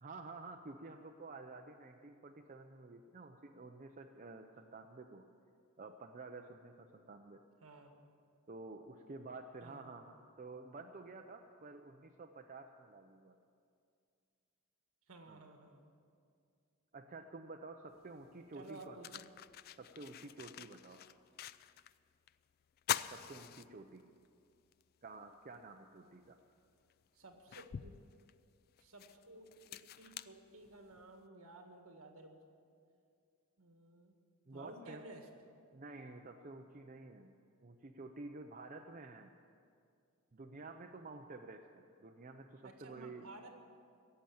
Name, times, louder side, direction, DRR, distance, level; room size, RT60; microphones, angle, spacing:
voice 1, 0.0-5.3 5.8-7.5 8.5-13.4 15.3-15.5 16.9-19.3 19.8-21.0 23.1-24.1 25.0-26.4 34.5-35.0 35.7-37.3 37.6-39.3 40.3-43.3, right 3 dB, 35° right, 4 dB, 0.5 m, -51 dB
voice 2, 7.6-7.9 9.6-9.9 15.1-15.8 18.5-19.2 27.1-27.9 28.8-32.4 33.6-34.2 34.5-35.3 42.6-43.5, right 2 dB, 70° right, 4 dB, 1.7 m, -55 dB
sound 1, 18.0-18.1 18.6-22.0 22.3-22.4 22.8-24.3 24.7-24.8 26.2-26.3 26.9-31.1, left 10 dB, 45° left, 0.3 m, -44 dB
17.0 x 7.7 x 8.7 m, 2.3 s
head